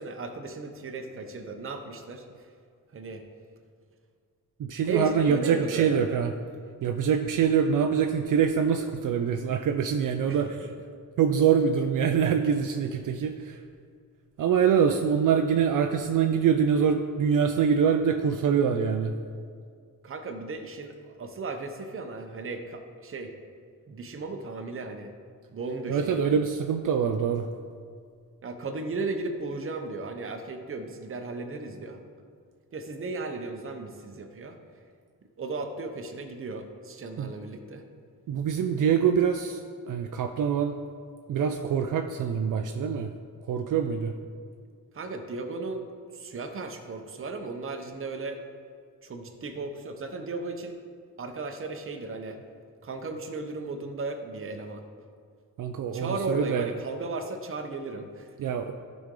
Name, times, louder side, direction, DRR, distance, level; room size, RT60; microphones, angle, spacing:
voice 1, 0.0-2.2 2.9-3.2 4.9-6.2 10.3-10.7 20.0-23.3 23.9-25.1 25.5-26.4 28.4-32.0 32.7-34.6 35.4-37.8 44.9-45.9 46.1-48.4 49.0-50.8 51.2-52.4 52.8-54.8 55.9-58.4, right 3 dB, 40° right, 5 dB, 0.8 m, -35 dB
voice 2, 4.6-6.3 6.8-10.7 11.2-13.6 14.4-19.1 25.9-27.5 37.2-37.3 38.3-39.6 39.9-40.8 41.3-43.1 43.5-44.1 55.6-56.7 58.4-58.7, right 7 dB, 70° right, 6 dB, 0.5 m, -24 dB
14.0 x 5.2 x 3.8 m, 2.1 s
wide cardioid pair, 155°, 34 cm